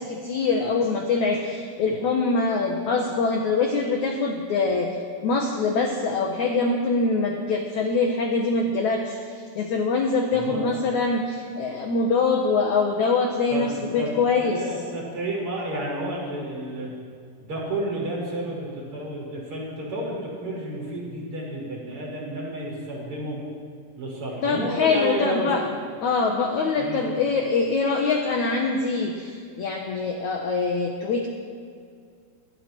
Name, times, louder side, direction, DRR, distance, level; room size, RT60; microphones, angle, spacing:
voice 1, 0.0-5.0 5.2-14.7 24.4-25.6 26.0-31.3, left 4 dB, 60° left, 1 dB, 2.0 m, -24 dB
voice 2, 10.3-10.7 13.5-13.6 14.0-16.9 17.4-23.4 24.0-25.5 26.8-27.0, right 1 dB, 30° right, -3 dB, 6.5 m, -31 dB
29.0 x 22.0 x 4.6 m, 2.2 s
omnidirectional pair, 5.4 m